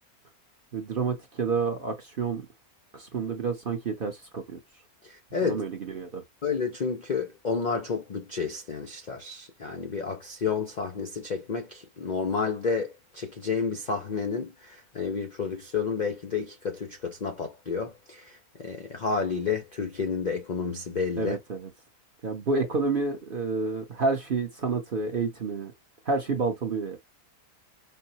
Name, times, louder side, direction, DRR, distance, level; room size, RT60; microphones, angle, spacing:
voice 1, 0.7-2.4 2.9-4.6 5.4-6.2 21.2-21.7 22.2-25.7 26.1-27.0, right 4 dB, 45° right, 0.7 m, -29 dB
voice 2, 5.3-5.6 6.4-18.2 18.6-21.4, left 5 dB, 55° left, 0.5 m, -30 dB
5.4 x 2.0 x 2.7 m
omnidirectional pair, 1.6 m